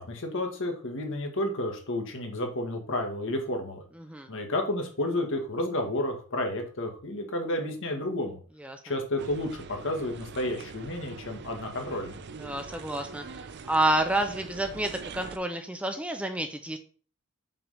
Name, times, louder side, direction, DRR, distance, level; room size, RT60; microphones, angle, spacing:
voice 1, 0.0-3.8 4.3-8.4 8.8-12.1, left 1 dB, 60° left, 3 dB, 1.5 m, -31 dB
voice 2, 4.0-4.3 8.6-8.8 12.4-13.2 13.7-16.8, right 1 dB, 5° right, 6 dB, 0.6 m, -29 dB
sound 1, 9.2-15.4, right 4 dB, 50° right, 0.5 m, -43 dB
5.8 x 3.5 x 5.5 m, 0.40 s
head